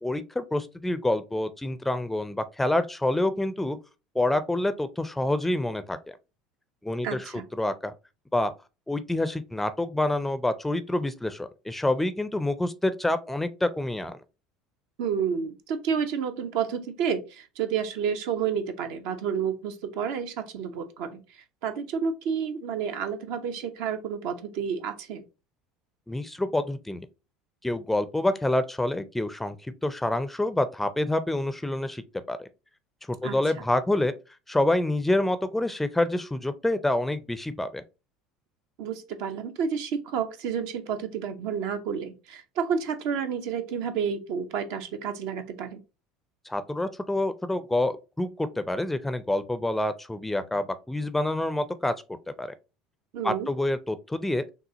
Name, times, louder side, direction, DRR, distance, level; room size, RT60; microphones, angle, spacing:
voice 1, 0.0-3.8 4.1-6.2 6.8-7.9 8.3-8.5 8.9-14.2 26.1-27.1 27.6-32.0 32.3-32.5 33.1-34.1 34.5-37.8 46.5-51.9 52.4-52.5 53.2-54.4, left 1 dB, 10° left, 0.5 m, -27 dB
voice 2, 7.0-7.4 15.0-25.2 33.2-33.3 38.8-45.8 53.1-53.5, right 7 dB, 60° right, 0.7 m, -30 dB
6.2 x 2.3 x 2.7 m
figure-of-eight pair, 70°, 3 cm